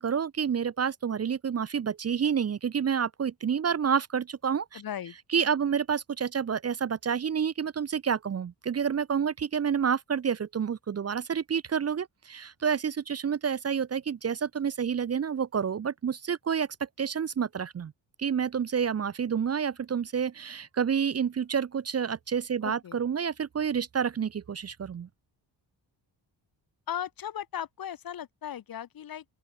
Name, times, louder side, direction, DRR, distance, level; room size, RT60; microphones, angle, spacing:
voice 1, 0.0-4.8 5.3-17.9 18.2-25.1, right 7 dB, 35° right, 0.7 m, -29 dB
voice 2, 4.7-5.1 22.6-23.0 26.9-29.2, left 10 dB, 50° left, 1.1 m, -37 dB
open air
wide cardioid pair, 160°, 44 cm